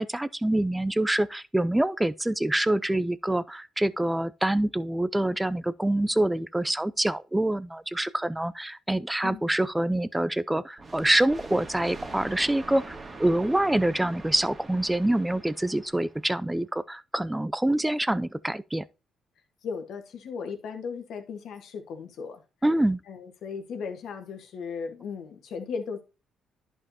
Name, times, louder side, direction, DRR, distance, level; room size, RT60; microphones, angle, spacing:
voice 1, 0.0-18.8 22.6-23.0, right 1 dB, 10° right, 0.5 m, -26 dB
sound 1, 10.8-16.3, right 3 dB, 30° right, 1.9 m, -43 dB
voice 2, 19.6-22.4 23.1-26.0, left 5 dB, 70° left, 1.8 m, -36 dB
11.0 x 5.5 x 2.9 m
cardioid pair, 90°, 0 cm